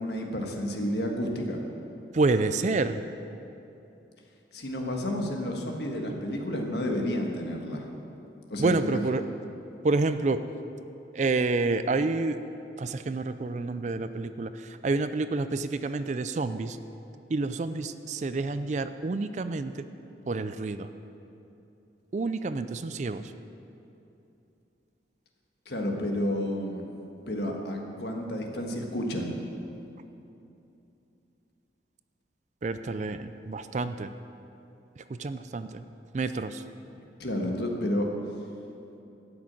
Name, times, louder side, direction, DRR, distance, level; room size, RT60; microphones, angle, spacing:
voice 1, 0.0-1.6 4.5-7.9 8.5-9.0 25.6-26.9 27.3-29.4 37.0-38.1, left 1 dB, 60° left, 1 dB, 1.5 m, -31 dB
voice 2, 2.1-3.0 8.6-9.2 9.8-10.4 11.1-12.4 12.8-16.8 17.3-19.9 20.3-20.9 22.1-23.2 32.6-34.1 35.1-35.8 36.1-36.6, right 3 dB, 40° right, 11 dB, 0.4 m, -28 dB
12.5 x 6.2 x 8.7 m, 2.8 s
head